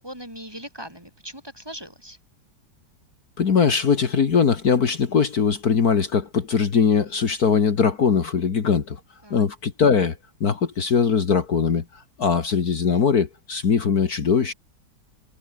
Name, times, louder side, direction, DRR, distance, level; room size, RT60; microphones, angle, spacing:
voice 1, 0.0-2.2 9.2-9.4, equal, 10° right, 5.5 m, -39 dB
voice 2, 3.4-9.0 9.3-10.1 10.4-11.8 12.2-14.5, left 6 dB, 60° left, 2.2 m, -21 dB
omnidirectional pair, 1.9 m